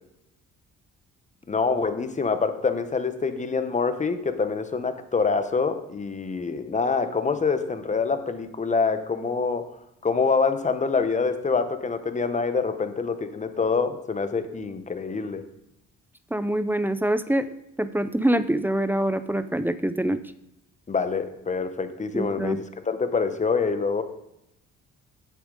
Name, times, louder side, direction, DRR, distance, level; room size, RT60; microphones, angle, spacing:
voice 1, 1.5-9.7 10.0-15.4 20.9-24.0, left 4 dB, 25° left, 9 dB, 0.9 m, -26 dB
voice 2, 16.3-17.5 17.8-20.2 22.1-22.6, right 1 dB, 5° right, 12 dB, 0.4 m, -25 dB
8.6 x 7.2 x 3.9 m, 0.83 s
cardioid pair, 90°, 30 cm